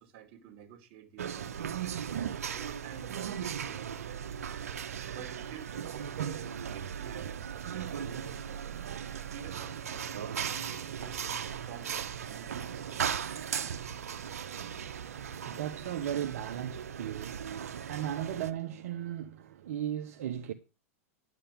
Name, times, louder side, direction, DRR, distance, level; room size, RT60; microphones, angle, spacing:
voice 1, 0.0-1.8 2.5-4.0 5.1-8.7 9.1-13.1, right 8 dB, 50° right, 2.6 m, -50 dB
sound 1, 1.2-18.5, right 8 dB, 90° right, 1.1 m, -37 dB
voice 2, 15.1-20.5, right 10 dB, 70° right, 1.2 m, -36 dB
11.5 x 8.4 x 5.2 m
hypercardioid pair, 120°, 8 cm